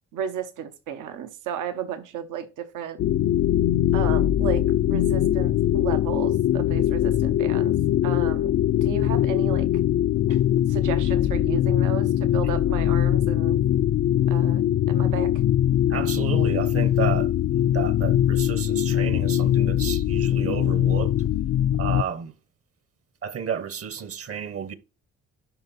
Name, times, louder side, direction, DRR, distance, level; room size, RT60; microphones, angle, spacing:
voice 1, 0.1-3.0 3.9-7.7 8.0-8.5 8.8-9.7 10.7-13.6 14.3-15.3, right 8 dB, 85° right, 1.0 m, -33 dB
sound 1, 3.0-22.0, left 11 dB, 60° left, 0.5 m, -22 dB
voice 2, 15.9-21.1 21.8-22.3 23.2-24.7, right 7 dB, 50° right, 1.0 m, -32 dB
11.5 x 4.4 x 4.1 m
cardioid pair, 90°, 30 cm